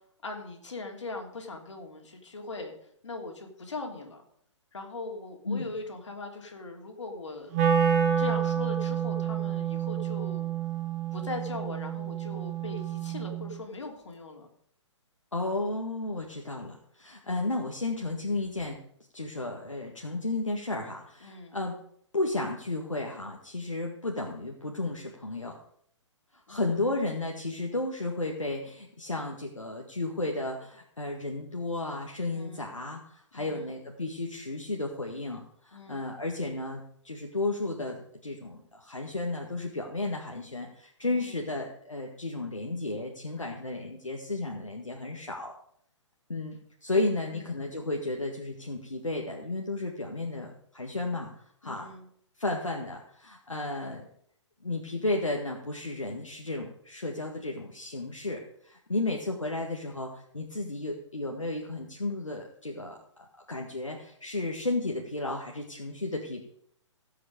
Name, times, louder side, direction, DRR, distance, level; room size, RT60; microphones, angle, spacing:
voice 1, 0.2-4.2 4.7-7.5 8.2-10.5 11.1-14.5 21.2-21.5 26.5-27.1 32.3-32.7 33.3-33.7 35.7-36.1 41.0-41.4 47.3-47.6 51.6-52.1, left 3 dB, 70° left, 2 dB, 3.1 m, -40 dB
Wind instrument woodwind instrument, 7.5-13.6, right 8 dB, 30° right, 2.0 m, -29 dB
voice 2, 15.3-18.8 19.1-21.7 22.1-25.6 26.3-45.5 46.3-51.3 51.6-51.9 52.4-54.0 54.6-63.0 63.5-66.4, left 2 dB, 85° left, 1 dB, 1.8 m, -33 dB
16.5 x 7.9 x 5.3 m, 0.68 s
figure-of-eight pair, 130°, 16 cm